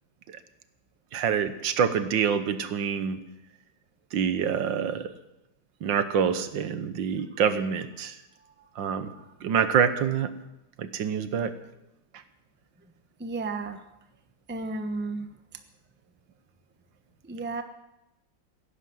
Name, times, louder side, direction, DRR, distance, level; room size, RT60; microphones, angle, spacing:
voice 1, 1.1-3.2 4.1-5.1 5.8-8.1 8.8-9.1 9.4-10.3 10.8-11.5, right 7 dB, 75° right, 11 dB, 1.7 m, -26 dB
voice 2, 13.2-13.8 14.5-15.3 17.2-17.6, right 3 dB, 10° right, 7 dB, 0.7 m, -34 dB
17.0 x 11.0 x 7.8 m, 0.90 s
omnidirectional pair, 2.1 m